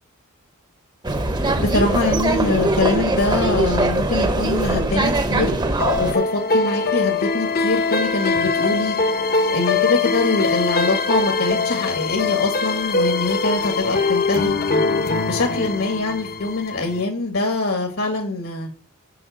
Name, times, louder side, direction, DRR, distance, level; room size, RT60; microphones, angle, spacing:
sound 1, 1.0-6.1, right 2 dB, 20° right, 0.8 m, -21 dB
voice 1, 1.6-5.6 6.0-9.0 9.5-14.5 15.3-18.7, left 2 dB, 70° left, 2 dB, 1.7 m, -23 dB
sound 2, 5.8-17.0, left 4 dB, 45° left, 0.8 m, -22 dB
7.8 x 5.8 x 7.8 m, 0.42 s
head